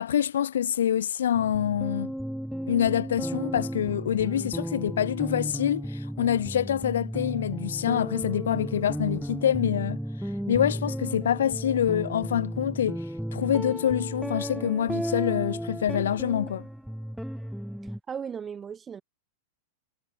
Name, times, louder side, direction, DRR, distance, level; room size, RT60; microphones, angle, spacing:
voice 1, 0.0-2.1 2.7-10.0 10.5-13.0 13.3-16.7, left 10 dB, 70° left, 0.4 m, -26 dB
sound 1, 1.3-18.0, equal, ahead, 0.4 m, -34 dB
voice 2, 18.1-19.0, right 7 dB, 20° right, 1.6 m, -36 dB
figure-of-eight pair, 95°, 0 cm